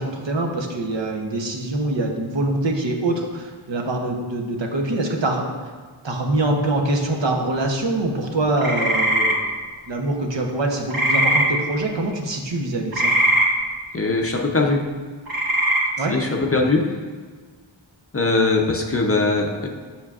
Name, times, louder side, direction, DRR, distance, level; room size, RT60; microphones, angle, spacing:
voice 1, 0.0-5.7 6.0-9.4 9.9-13.1 16.0-16.2, right 2 dB, 60° right, 1 dB, 0.9 m, -24 dB
sound 1, 8.6-9.3 10.9-11.5 12.9-13.5 15.3-15.8, right 1 dB, 45° right, 1.3 m, -19 dB
voice 2, 13.9-14.8 16.1-16.8 18.1-19.7, left 3 dB, 30° left, 1 dB, 0.6 m, -20 dB
7.4 x 5.6 x 2.4 m, 1.5 s
wide cardioid pair, 80°, 48 cm